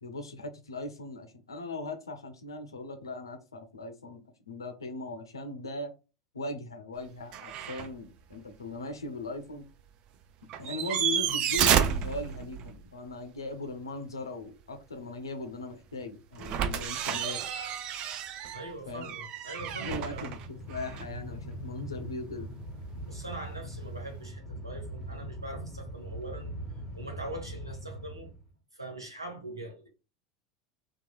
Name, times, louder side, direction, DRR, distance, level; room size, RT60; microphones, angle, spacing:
voice 1, 0.0-5.9 6.3-9.7 10.6-17.4 18.9-19.1 19.8-22.5, left 2 dB, 80° left, 0.6 m, -39 dB
sound 1, 7.3-7.9 8.3-8.4 10.5-12.8 16.4-21.2 23.3-23.4, right 9 dB, 45° right, 0.3 m, -30 dB
voice 2, 18.5-20.3 23.1-26.5 26.9-28.3 28.7-29.9, right 1 dB, 90° right, 0.8 m, -42 dB
Train, 19.6-28.5, equal, 5° left, 1.2 m, -41 dB
2.9 x 2.3 x 2.3 m
figure-of-eight pair, 75°, 2 cm